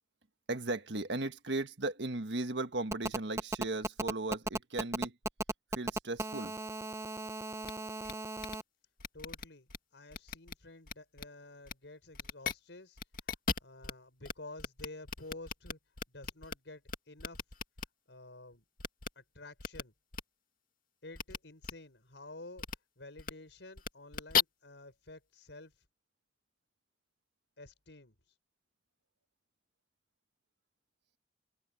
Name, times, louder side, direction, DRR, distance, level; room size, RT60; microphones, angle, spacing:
voice 1, 0.5-5.1 5.7-6.5, right 2 dB, 75° right, 1.6 m, -36 dB
Telephone, 2.9-8.6, right 2 dB, 15° right, 0.7 m, -36 dB
sound 1, 7.6-7.7 8.0-8.1 8.4-8.6 9.0-9.8 10.1-10.5 10.9-11.2 11.7-11.8 12.1-12.5 13.0-13.9 14.2-14.3 14.6-16.5 16.9-17.9 18.8-19.1 19.6-19.8 20.1-20.2 21.1-21.4 21.6-21.7 22.6-22.8 23.2-23.3 23.8-24.4, left 6 dB, 50° left, 2.1 m, -35 dB
voice 2, 9.1-13.0 13.6-15.8 16.1-17.4 18.1-18.6 19.1-19.9 21.0-22.7 23.0-25.8 27.6-28.1, left 2 dB, 90° left, 4.8 m, -51 dB
head